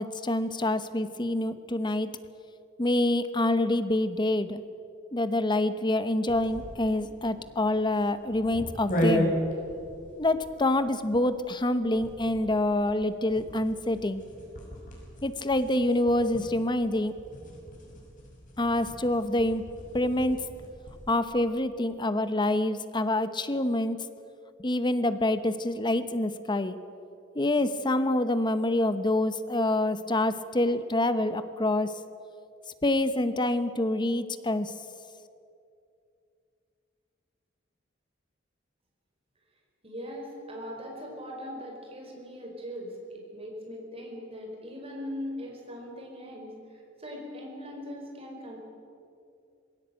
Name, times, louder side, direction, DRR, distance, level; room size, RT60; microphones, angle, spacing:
voice 1, 0.0-2.1 2.8-4.6 5.1-9.3 10.2-14.2 15.2-17.1 18.6-19.6 19.9-20.4 21.1-24.0 24.6-26.8 27.3-31.9 32.8-34.7, left 1 dB, 25° left, 12 dB, 0.9 m, -26 dB
sound 1, 6.3-21.2, equal, 45° left, 5.9 m, -36 dB
voice 2, 39.8-46.5 47.0-48.6, equal, 30° right, 0 dB, 4.9 m, -40 dB
21.0 x 17.0 x 9.0 m, 2.5 s
head